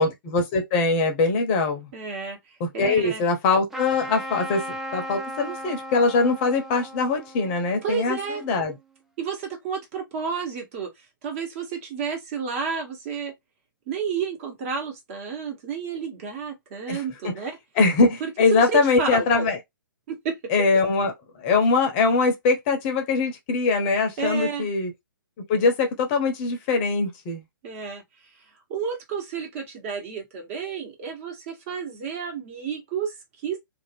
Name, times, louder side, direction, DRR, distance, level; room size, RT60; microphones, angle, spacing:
voice 1, 0.0-1.9 2.6-8.8 16.9-17.3 17.8-19.6 20.5-21.1 21.4-24.9 25.5-27.4, left 4 dB, 30° left, 0.7 m, -22 dB
voice 2, 1.9-2.4 2.7-3.2 7.8-8.4 9.2-10.9 11.2-13.3 13.9-17.5 18.2-19.5 20.1-20.3 24.2-24.7 27.6-28.0 28.7-33.2 33.4-33.6, right 6 dB, 40° right, 1.2 m, -31 dB
Trumpet, 3.7-8.8, equal, 5° right, 0.4 m, -37 dB
2.6 x 2.4 x 3.3 m
figure-of-eight pair, 125°, 11 cm